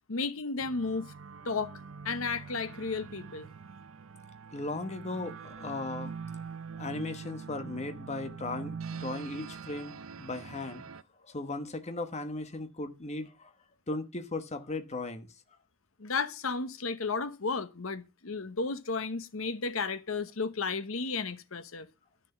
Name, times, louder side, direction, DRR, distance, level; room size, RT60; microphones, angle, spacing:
voice 1, 0.1-1.1 1.4-1.8 2.0-3.5 16.0-21.9, left 4 dB, 75° left, 1.0 m, -33 dB
sound 1, 0.6-11.0, right 5 dB, 75° right, 0.7 m, -44 dB
voice 2, 4.5-6.1 6.8-8.7 9.0-10.8 11.2-13.5 13.9-15.3, left 2 dB, 30° left, 1.2 m, -37 dB
11.5 x 6.7 x 7.0 m
head